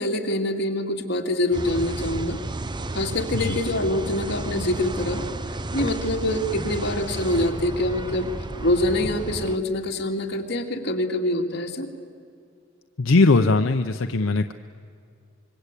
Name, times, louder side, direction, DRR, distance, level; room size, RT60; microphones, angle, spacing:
voice 1, 0.0-2.4 2.9-5.2 5.7-8.3 8.6-11.9, left 1 dB, 60° left, 1 dB, 2.5 m, -25 dB
sound 1, 1.5-9.6, right 2 dB, 25° right, 0.7 m, -32 dB
voice 2, 13.0-14.5, left 3 dB, 85° left, 7 dB, 0.7 m, -20 dB
26.0 x 23.0 x 8.4 m, 2.4 s
head